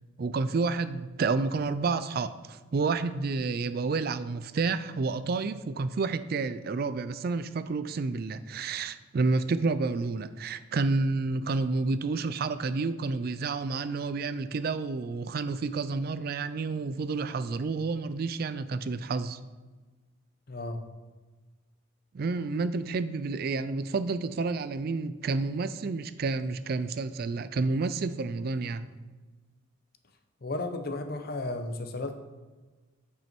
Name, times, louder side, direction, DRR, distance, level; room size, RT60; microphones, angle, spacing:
voice 1, 0.2-19.4 22.1-28.9, right 3 dB, 45° right, 13 dB, 0.3 m, -30 dB
voice 2, 20.5-20.8 30.4-32.1, left 2 dB, 50° left, 6 dB, 0.8 m, -33 dB
9.0 x 5.5 x 4.5 m, 1.3 s
head